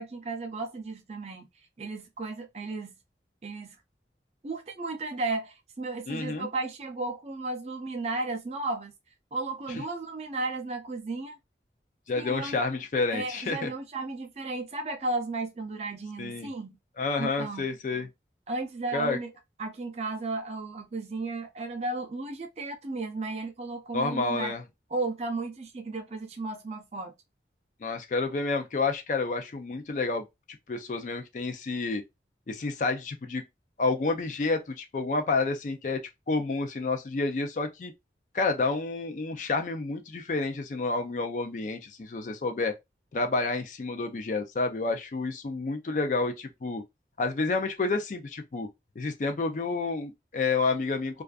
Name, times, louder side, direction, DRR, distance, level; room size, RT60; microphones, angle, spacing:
voice 1, 0.0-1.5 1.8-2.9 3.4-3.7 4.4-8.9 9.3-11.4 12.2-12.6 13.1-16.8 17.2-17.7 18.5-19.3 19.6-24.6 24.9-27.1, right 3 dB, 35° right, 0.4 m, -34 dB
voice 2, 6.1-6.5 9.7-9.8 12.1-13.7 16.2-16.5 17.0-18.1 18.9-19.2 23.9-24.6 27.8-30.2 30.7-32.0 32.5-33.4 33.8-36.0 36.3-37.9 38.3-42.7 43.1-46.8 47.2-48.7 49.0-51.2, left 3 dB, 45° left, 0.4 m, -29 dB
2.4 x 2.3 x 2.2 m
head